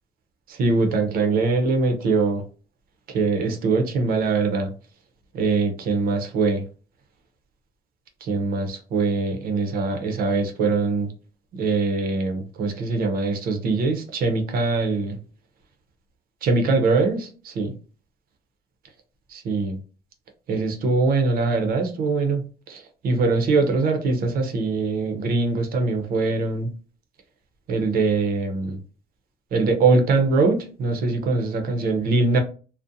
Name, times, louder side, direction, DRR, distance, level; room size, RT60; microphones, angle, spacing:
voice 1, 0.6-2.4 3.1-4.7 5.3-6.6 8.3-11.1 11.5-15.2 16.4-17.7 19.3-19.8 20.5-22.4 22.7-26.7 27.7-28.8 29.5-32.4, right 3 dB, 60° right, 5 dB, 0.6 m, -22 dB
2.6 x 2.1 x 2.4 m, 0.37 s
cardioid pair, 110°, 17 cm